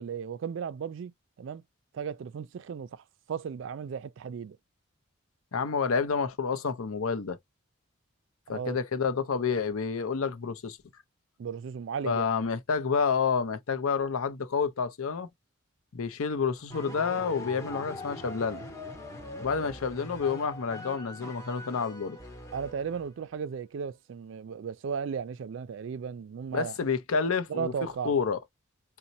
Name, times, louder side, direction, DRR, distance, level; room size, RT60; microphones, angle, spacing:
voice 1, 0.0-1.6 1.9-4.6 8.5-8.8 11.4-12.3 22.5-26.8 27.5-28.1, right 6 dB, 60° right, 0.3 m, -35 dB
voice 2, 5.5-7.4 8.5-10.8 12.0-15.3 15.9-18.6 19.4-22.2 26.5-28.4, left 5 dB, 80° left, 0.6 m, -29 dB
sound 1, 16.7-23.2, left 1 dB, 15° left, 0.7 m, -42 dB
4.0 x 2.1 x 2.6 m
head